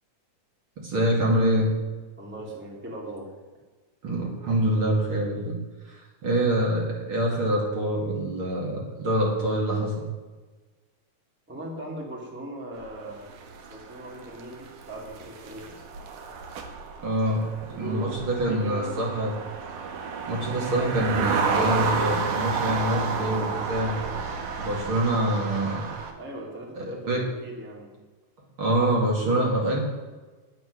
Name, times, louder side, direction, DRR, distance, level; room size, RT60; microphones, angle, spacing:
voice 1, 0.8-1.7 4.0-5.6 5.9-10.0 17.0-17.4 17.8-19.3 20.3-24.0 24.6-25.9 26.8-27.2 28.6-29.8, right 1 dB, 45° right, -1 dB, 2.6 m, -25 dB
voice 2, 2.2-3.3 11.5-13.2 13.7-15.8 17.2-17.3 17.7-18.1 18.5-19.0 26.2-28.0, right 1 dB, 5° right, -2 dB, 1.7 m, -39 dB
sound 1, 12.8-26.1, right 5 dB, 75° right, 2.7 m, -31 dB
10.5 x 9.4 x 6.3 m, 1.3 s
omnidirectional pair, 3.6 m